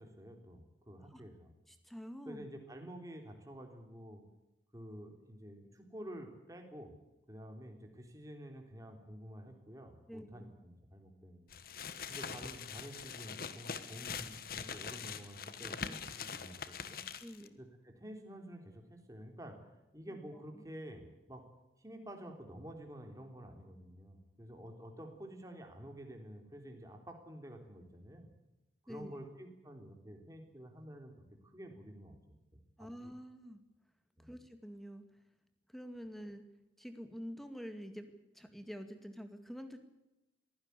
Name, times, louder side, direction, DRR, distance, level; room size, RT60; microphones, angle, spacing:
voice 1, 0.0-1.5 2.3-4.2 4.7-6.9 7.3-11.5 12.1-17.0 17.6-19.6 19.9-21.4 21.8-28.3 28.8-31.1 31.4-32.2 32.5-33.1 34.2-34.3, equal, 20° right, 3 dB, 3.5 m, -50 dB
voice 2, 1.7-2.5 10.1-10.5 17.2-17.5 20.5-20.6 28.9-29.2 32.8-33.6 34.2-35.0 35.7-36.4 36.8-39.8, equal, ahead, 7 dB, 2.1 m, -47 dB
sound 1, 11.5-17.5, left 6 dB, 55° left, 1.3 m, -43 dB
22.5 x 16.0 x 8.3 m, 0.99 s
head